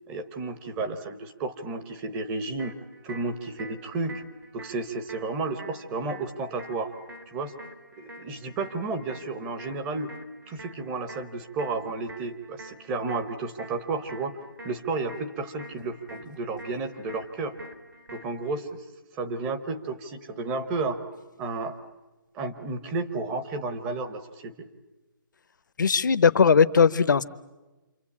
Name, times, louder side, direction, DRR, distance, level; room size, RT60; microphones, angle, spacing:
voice 1, 0.1-2.8 3.0-4.2 4.5-7.0 7.3-7.5 8.0-10.1 10.5-14.3 14.6-17.6 18.1-18.8 19.1-21.0 21.4-21.7 22.3-24.7, right 3 dB, 10° right, 8 dB, 0.9 m, -32 dB
sound 1, 2.6-18.6, right 1 dB, 75° right, 3.5 m, -47 dB
voice 2, 25.8-27.2, left 6 dB, 60° left, 14 dB, 1.0 m, -19 dB
28.0 x 25.0 x 8.6 m, 1.1 s
hypercardioid pair, 175°, 11 cm